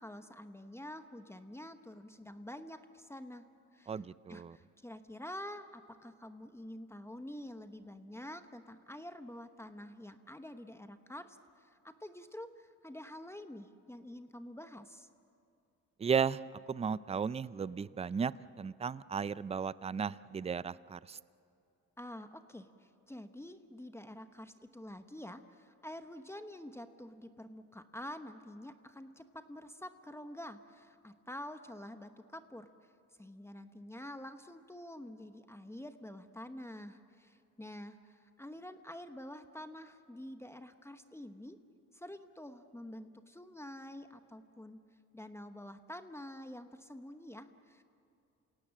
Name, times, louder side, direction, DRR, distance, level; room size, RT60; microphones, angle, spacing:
voice 1, 0.0-3.4 3.7-3.9 4.3-15.1 22.0-32.9 33.2-41.6 41.9-44.8 45.1-47.8, left 1 dB, 10° left, 8 dB, 1.0 m, -48 dB
voice 2, 3.9-4.6 16.0-16.4 16.7-21.2, right 6 dB, 20° right, 18 dB, 0.4 m, -35 dB
27.5 x 17.5 x 7.4 m, 2.6 s
cardioid pair, 90°, 30 cm